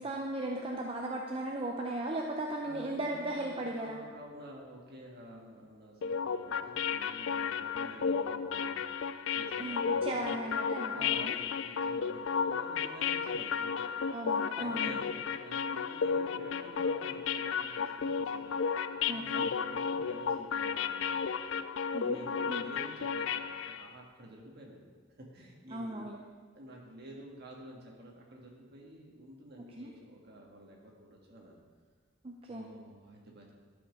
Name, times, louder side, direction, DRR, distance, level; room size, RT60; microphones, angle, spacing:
voice 1, 0.0-4.0 9.6-11.4 14.1-15.0 19.1-19.5 21.9-22.2 22.5-22.7 25.7-26.2 29.8-29.9 32.2-32.7, right 1 dB, 30° right, 0 dB, 0.6 m, -37 dB
voice 2, 2.6-8.8 9.3-10.4 10.9-13.9 14.6-21.4 22.0-24.9 25.2-26.1 26.5-31.6 32.4-33.5, right 1 dB, 55° right, -1 dB, 1.7 m, -50 dB
sound 1, 6.0-23.9, left 6 dB, 70° left, 0.4 m, -33 dB
11.5 x 5.5 x 5.3 m, 1.5 s
head